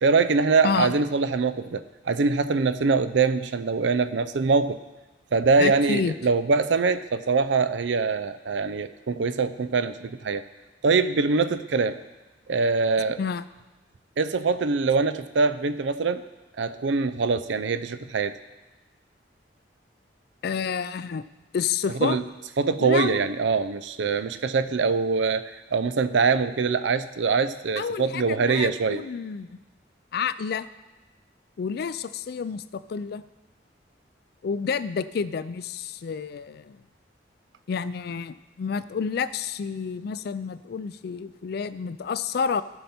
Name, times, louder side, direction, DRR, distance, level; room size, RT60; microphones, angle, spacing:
voice 1, 0.0-4.8 5.3-10.4 10.8-12.0 12.5-13.2 14.2-16.2 16.6-18.4 22.0-22.2 22.6-29.0, right 4 dB, 80° right, 12 dB, 0.5 m, -23 dB
voice 2, 5.6-6.2 13.2-13.5 20.4-21.3 21.5-22.2 22.8-23.3 27.8-29.6 30.1-30.7 31.6-33.2 34.4-36.8 37.7-42.6, left 6 dB, 60° left, 15 dB, 0.4 m, -29 dB
15.5 x 5.6 x 4.3 m, 1.1 s
head